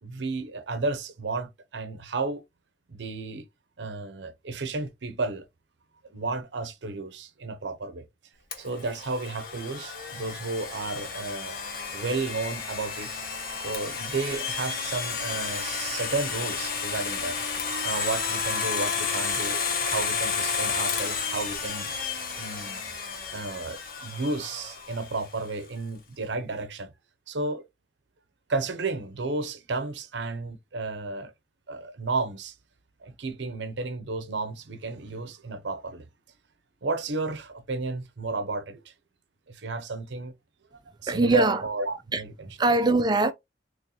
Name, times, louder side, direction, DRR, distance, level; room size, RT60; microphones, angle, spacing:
voice 1, 0.0-2.4 2.9-3.4 3.8-5.5 6.1-8.1 8.6-11.6 11.9-13.2 13.6-17.4 17.8-21.9 22.4-22.9 23.3-26.9 27.3-27.6 28.5-31.3 31.7-32.5 33.0-36.0 36.8-38.9 39.5-40.3 40.7-42.5, right 3 dB, 80° right, 0.7 m, -32 dB
Domestic sounds home sounds, 8.5-25.3, left 5 dB, 55° left, 1.0 m, -32 dB
voice 2, 41.1-41.6 42.1-42.2 42.6-43.3, right 3 dB, 25° right, 0.4 m, -22 dB
3.9 x 3.1 x 2.8 m
head